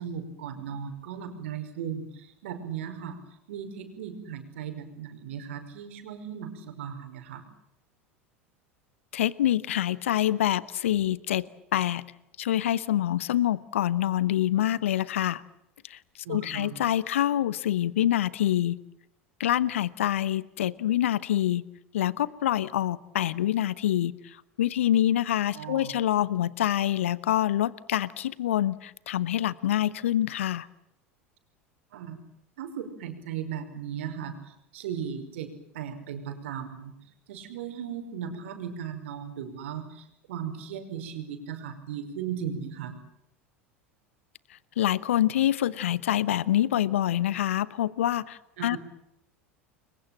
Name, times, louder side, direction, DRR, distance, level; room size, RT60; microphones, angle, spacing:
voice 1, 0.0-7.5 16.2-16.7 25.5-26.0 31.9-32.2 32.6-36.9 37.3-43.0 48.6-48.8, right 8 dB, 70° right, 7 dB, 5.4 m, -37 dB
voice 2, 9.1-12.0 12.4-15.4 15.8-16.0 16.3-18.8 19.4-21.6 21.9-30.7 44.5-48.8, left 12 dB, 75° left, 19 dB, 1.0 m, -26 dB
30.0 x 23.0 x 7.5 m, 0.79 s
hypercardioid pair, 80°, 7 cm